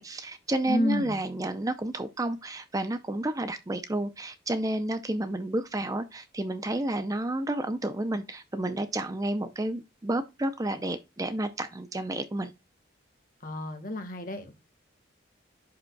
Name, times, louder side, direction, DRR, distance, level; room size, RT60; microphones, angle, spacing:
voice 1, 0.0-12.5, right 1 dB, 20° right, 0.5 m, -31 dB
voice 2, 0.7-1.2 13.4-14.5, left 1 dB, 45° left, 1.5 m, -30 dB
11.0 x 5.0 x 2.3 m
head